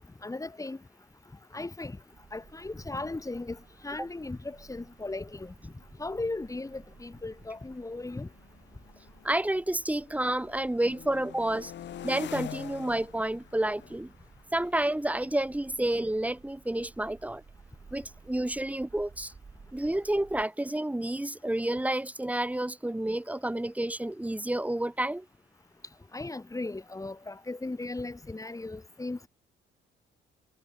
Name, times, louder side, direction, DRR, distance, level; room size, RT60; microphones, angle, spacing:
voice 1, 0.2-0.8 1.5-2.0 2.3-5.7 6.0-8.3 26.1-29.3, left 2 dB, 15° left, 2.5 m, -37 dB
sound 1, 2.1-20.5, right 4 dB, 30° right, 6.3 m, -56 dB
sound 2, 4.2-4.3 4.5-4.9 5.6-9.6 9.9-16.6, left 11 dB, 65° left, 1.3 m, -47 dB
voice 2, 9.2-11.7 12.0-14.1 14.5-17.4 17.9-19.3 19.7-25.3, right 1 dB, 5° right, 1.0 m, -30 dB
cardioid pair, 90°, 20 cm